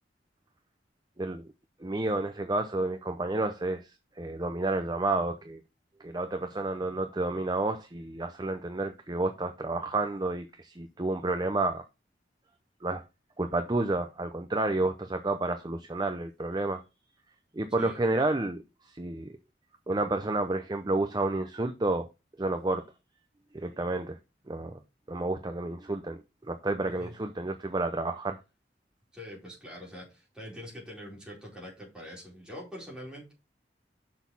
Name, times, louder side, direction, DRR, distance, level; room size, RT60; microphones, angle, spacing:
voice 1, 1.8-3.9 4.2-5.6 6.0-11.8 12.8-13.0 13.4-16.8 17.5-19.3 19.9-22.1 22.4-22.9 23.6-24.2 24.5-24.8 25.1-26.2 26.5-28.4, right 2 dB, 25° right, 0.6 m, -30 dB
voice 2, 29.1-33.3, equal, 5° right, 4.4 m, -44 dB
6.4 x 6.1 x 5.5 m
head